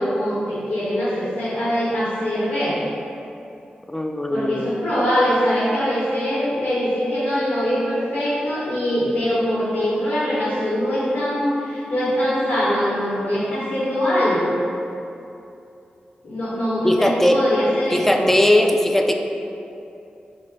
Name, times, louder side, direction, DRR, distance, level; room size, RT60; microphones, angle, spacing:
voice 1, 0.0-2.8 4.3-14.6 16.2-18.3, equal, 75° left, -9 dB, 1.1 m, -22 dB
voice 2, 3.9-4.7 16.8-17.4 17.9-19.1, left 1 dB, 10° left, 4 dB, 0.3 m, -18 dB
4.7 x 2.1 x 4.5 m, 2.7 s
cardioid pair, 65°, 3 cm